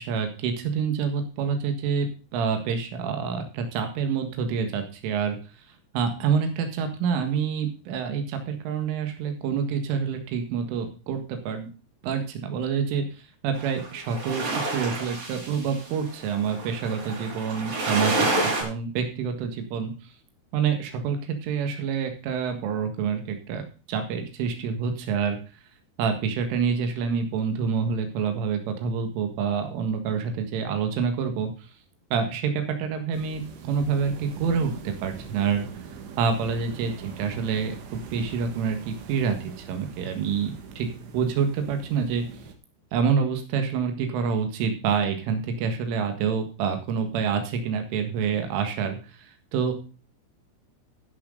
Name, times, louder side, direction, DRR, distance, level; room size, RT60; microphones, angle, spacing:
voice 1, 0.0-2.1 2.3-5.4 5.9-11.7 12.0-13.0 13.4-14.4 14.7-19.9 20.5-23.6 23.9-25.4 26.0-31.5 32.1-35.7 36.2-40.9 41.1-42.2 42.9-49.0 49.5-49.7, right 6 dB, 85° right, 6 dB, 4.3 m, -27 dB
sound 1, 13.6-18.6, right 2 dB, 45° right, 7.4 m, -28 dB
sound 2, 33.1-42.5, right 5 dB, 65° right, 3.7 m, -43 dB
16.5 x 8.1 x 3.8 m, 0.34 s
omnidirectional pair, 5.5 m